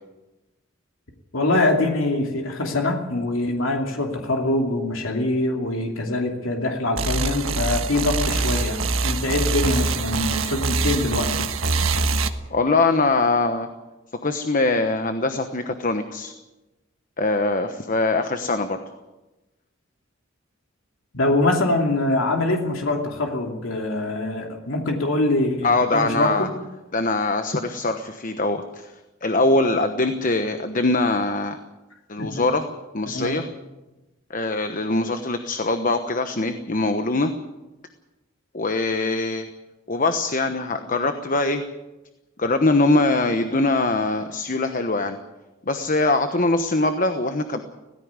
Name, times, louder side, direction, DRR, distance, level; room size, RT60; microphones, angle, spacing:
voice 1, 1.3-11.5 21.1-26.5 32.2-32.4 33.1-33.4, left 2 dB, 75° left, 2 dB, 2.7 m, -24 dB
sound 1, 7.0-12.3, right 3 dB, 90° right, 1.5 m, -24 dB
voice 2, 12.5-13.7 14.2-16.3 17.2-18.8 25.6-26.5 26.9-28.9 29.2-31.6 32.1-32.7 32.9-33.5 34.3-37.3 38.5-39.5 39.9-41.6 42.4-45.2 45.7-47.6, left 2 dB, 40° left, 8 dB, 1.1 m, -22 dB
17.5 x 15.5 x 9.6 m, 1.1 s
head